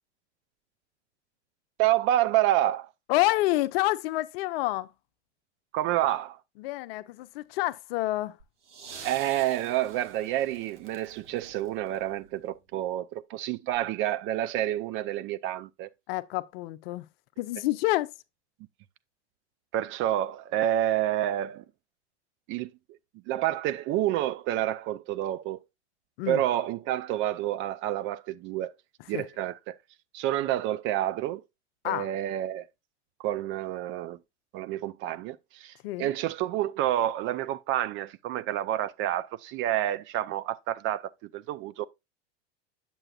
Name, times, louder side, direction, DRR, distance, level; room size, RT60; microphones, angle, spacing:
voice 1, 1.8-2.9 5.7-6.4 9.0-15.9 19.7-21.6 22.5-22.7 23.3-25.6 26.3-28.7 29.1-29.8 30.1-31.4 31.8-32.7 33.2-34.2 34.5-35.7 36.0-41.8, right 13 dB, 35° right, 0.4 m, -28 dB
voice 2, 3.1-4.9 6.6-8.4 16.1-17.0 17.4-18.1 26.2-26.4 29.1-29.3 31.8-32.1 35.8-36.1, left 18 dB, 55° left, 0.7 m, -28 dB
sound 1, 8.4-12.6 13.7-13.8, right 6 dB, 80° right, 1.6 m, -48 dB
8.8 x 6.9 x 2.4 m
hypercardioid pair, 85°, 35 cm